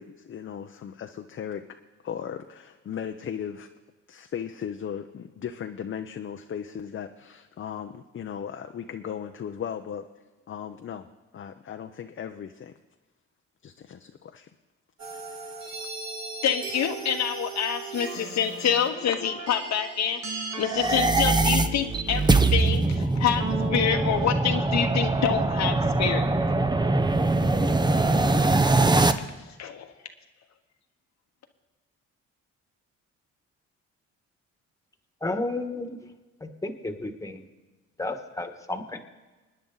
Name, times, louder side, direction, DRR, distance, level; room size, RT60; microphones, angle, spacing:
voice 1, 0.0-1.6 2.0-3.7 4.1-10.1 10.5-11.1 11.3-12.7 13.6-14.5, left 8 dB, 40° left, 6 dB, 0.7 m, -37 dB
sound 1, 15.0-24.3, right 3 dB, 65° right, 2.0 m, -37 dB
voice 2, 16.4-23.4 23.7-26.2 29.6-29.9, left 8 dB, 65° left, 5 dB, 1.2 m, -27 dB
sound 2, 20.6-29.1, right 2 dB, 15° right, 0.7 m, -22 dB
voice 3, 35.2-36.0 36.4-37.4 38.0-39.0, left 2 dB, 10° left, 6 dB, 1.5 m, -32 dB
26.5 x 9.9 x 4.0 m, 1.2 s
cardioid pair, 95°, 30 cm